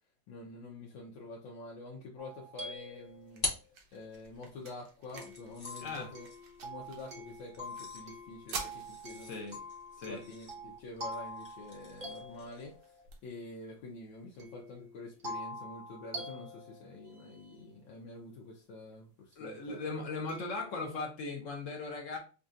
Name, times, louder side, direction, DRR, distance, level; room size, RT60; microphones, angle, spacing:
voice 1, 0.3-3.5 3.9-6.3 6.6-9.4 10.1-19.8, left 2 dB, 80° left, -1 dB, 1.4 m, -47 dB
sound 1, 2.2-3.7 5.1-13.0 14.4-17.7 19.3-19.4 20.3-20.8, equal, 40° right, 0.8 m, -46 dB
sound 2, 2.7-14.7, right 4 dB, 65° right, 1.4 m, -51 dB
sound 3, 2.8-4.5 5.2-12.8, left 2 dB, 30° left, 0.8 m, -45 dB
voice 2, 9.2-9.6 10.0-10.2 19.4-22.2, left 3 dB, 55° left, 2 dB, 0.9 m, -38 dB
5.3 x 2.4 x 2.6 m, 0.36 s
omnidirectional pair, 2.1 m